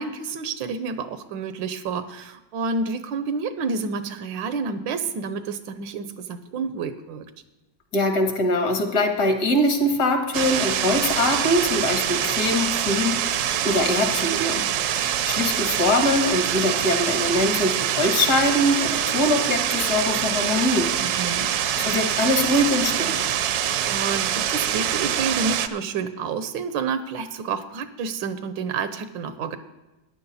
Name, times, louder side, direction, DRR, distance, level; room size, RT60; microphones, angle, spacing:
voice 1, 0.0-7.3 21.0-21.5 23.9-29.6, right 5 dB, 85° right, 11 dB, 1.5 m, -29 dB
voice 2, 7.9-14.6 14.9-20.9 21.8-23.3, left 1 dB, 60° left, 5 dB, 1.8 m, -23 dB
sound 1, 10.3-25.7, right 10 dB, 70° right, 1.0 m, -25 dB
14.0 x 9.9 x 4.1 m, 1.0 s
omnidirectional pair, 2.0 m